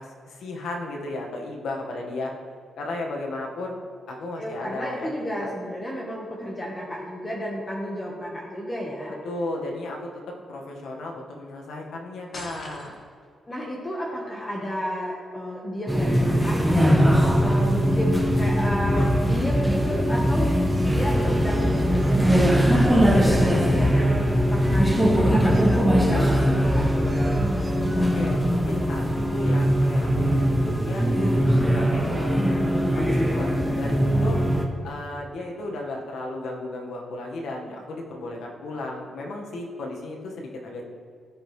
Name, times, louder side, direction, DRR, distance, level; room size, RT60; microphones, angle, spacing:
voice 1, 0.0-2.3 2.8-3.8 4.1-5.1 5.4-5.5 9.2-12.9 27.9-31.4 31.7-32.6 32.9-33.5 33.8-34.4 34.8-40.8, left 2 dB, 75° left, 0 dB, 1.6 m, -34 dB
voice 2, 4.4-9.1 13.5-27.1, equal, 20° left, -3 dB, 1.3 m, -32 dB
sound 1, 12.3-13.3, left 2 dB, 45° left, 1.5 m, -40 dB
sound 2, 15.9-34.7, equal, ahead, 1.0 m, -21 dB
sound 3, 20.5-28.5, right 1 dB, 20° right, 0.6 m, -34 dB
15.0 x 5.4 x 3.3 m, 2.3 s
cardioid pair, 115°, 0 cm